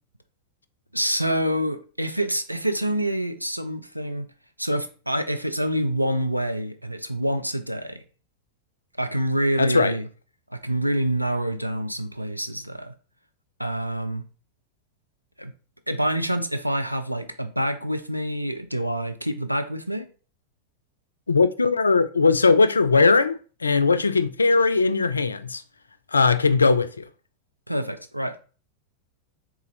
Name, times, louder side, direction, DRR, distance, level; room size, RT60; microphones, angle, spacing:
voice 1, 0.9-4.3 4.6-8.0 9.0-10.0 10.5-12.9 13.6-14.2 15.4-15.5 15.9-20.1 27.7-28.4, right 1 dB, 90° right, 0.4 m, -26 dB
voice 2, 9.6-10.0 21.3-25.6 26.1-27.1, left 4 dB, 75° left, 0.3 m, -19 dB
3.8 x 2.3 x 3.1 m
figure-of-eight pair, 90°, 0 cm